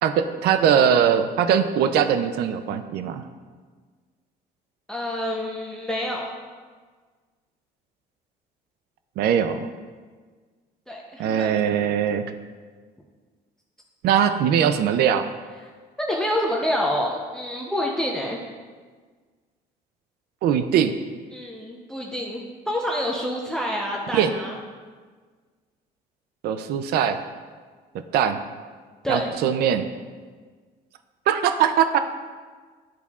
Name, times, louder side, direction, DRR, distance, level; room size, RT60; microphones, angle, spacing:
voice 1, 0.0-3.2 9.2-9.7 11.2-12.3 14.0-15.3 20.4-20.9 24.1-24.3 26.4-27.2 28.1-28.4 29.1-29.9 31.3-32.0, right 8 dB, 70° right, 10 dB, 0.4 m, -21 dB
voice 2, 4.9-6.3 10.9-11.5 16.0-18.4 21.3-24.6 29.0-29.3, equal, 5° left, -2 dB, 0.7 m, -27 dB
12.0 x 4.1 x 2.4 m, 1.5 s
cardioid pair, 110°, 17 cm